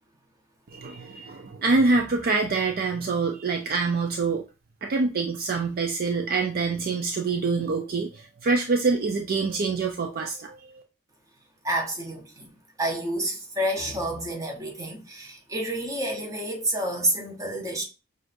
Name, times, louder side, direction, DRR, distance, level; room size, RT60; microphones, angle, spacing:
voice 1, 0.7-4.4 4.8-10.8, right 3 dB, 45° right, 0.4 m, -25 dB
voice 2, 11.6-17.8, right 1 dB, 15° right, 0.9 m, -29 dB
6.1 x 2.5 x 2.6 m
head